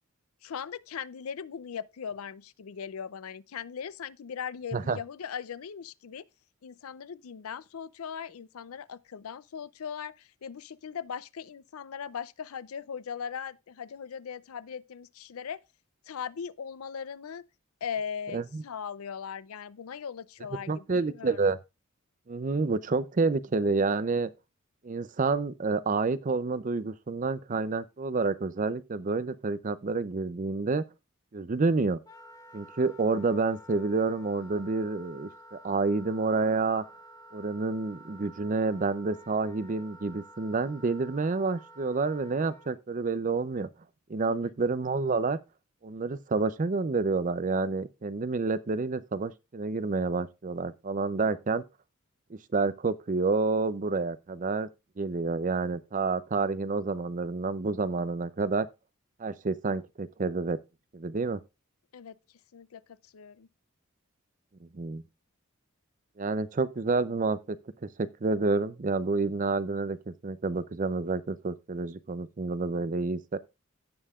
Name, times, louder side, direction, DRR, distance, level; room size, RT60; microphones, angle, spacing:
voice 1, 0.4-6.2 6.6-15.6 16.1-17.4 17.8-21.4 44.2-44.5 61.9-62.2 62.5-62.8 63.1-63.5, left 7 dB, 90° left, 0.5 m, -39 dB
voice 2, 18.3-18.6 20.7-21.6 22.3-24.3 24.8-30.8 31.3-32.0 32.5-36.8 37.3-43.7 44.1-45.4 45.8-51.6 52.3-54.7 55.0-58.7 59.2-60.6 60.9-61.4 64.7-65.0 66.2-67.6 68.0-73.4, right 3 dB, 40° right, 0.5 m, -29 dB
Wind instrument woodwind instrument, 32.0-42.7, right 1 dB, 15° left, 1.4 m, -51 dB
16.5 x 5.5 x 2.4 m
head